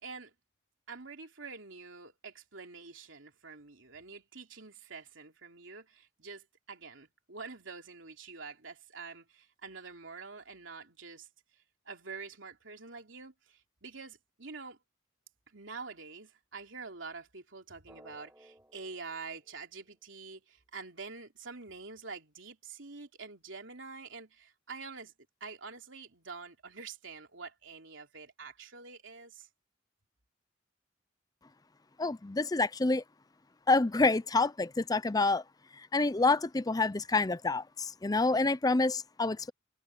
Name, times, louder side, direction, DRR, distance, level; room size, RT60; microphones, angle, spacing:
voice 1, 0.0-0.3 0.9-11.3 11.8-14.8 15.5-25.1 25.4-29.5, right 4 dB, 80° right, 3.1 m, -46 dB
Drum, 17.9-20.5, right 1 dB, 10° right, 7.1 m, -59 dB
voice 2, 32.0-33.0 33.7-35.4 35.9-39.5, left 3 dB, 20° left, 0.5 m, -27 dB
head